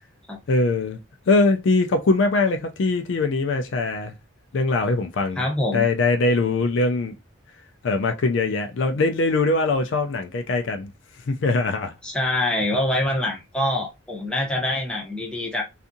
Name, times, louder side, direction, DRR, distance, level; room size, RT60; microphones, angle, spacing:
voice 1, 0.5-1.0 1.3-4.1 4.5-5.4 5.7-7.1 7.8-10.9 11.3-11.9, left 3 dB, 60° left, 0.4 m, -22 dB
voice 2, 5.4-5.9 12.0-15.6, left 1 dB, 5° left, 0.6 m, -25 dB
2.6 x 2.4 x 2.6 m
head